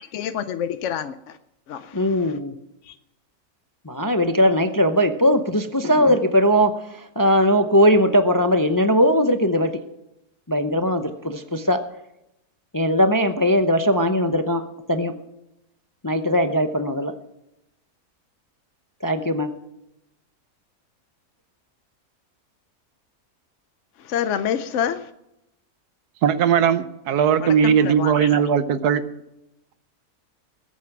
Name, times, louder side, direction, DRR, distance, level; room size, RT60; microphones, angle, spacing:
voice 1, 0.0-1.4 1.7-2.4 2.8-2.9 24.0-25.1 27.4-28.4, left 9 dB, 60° left, 10 dB, 0.9 m, -28 dB
voice 2, 1.9-2.5 3.9-9.8 10.5-11.8 12.7-14.6 14.9-15.2 16.0-17.1 19.0-19.5, equal, 25° left, 8 dB, 0.4 m, -19 dB
voice 3, 26.2-29.0, right 8 dB, 90° right, 13 dB, 1.4 m, -19 dB
20.5 x 8.4 x 6.0 m, 0.86 s
omnidirectional pair, 1.6 m